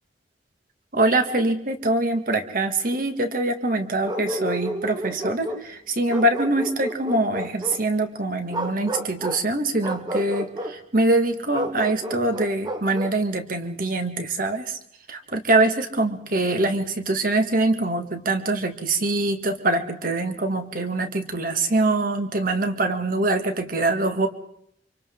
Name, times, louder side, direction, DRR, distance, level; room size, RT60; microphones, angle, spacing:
voice 1, 0.9-14.8 15.1-24.3, right 2 dB, 50° right, 7 dB, 2.0 m, -24 dB
Bark, 4.0-5.7 6.1-7.8 8.5-9.5 9.8-10.8 11.5-13.2, right 1 dB, 25° right, 1.3 m, -31 dB
29.0 x 26.5 x 3.8 m, 0.69 s
head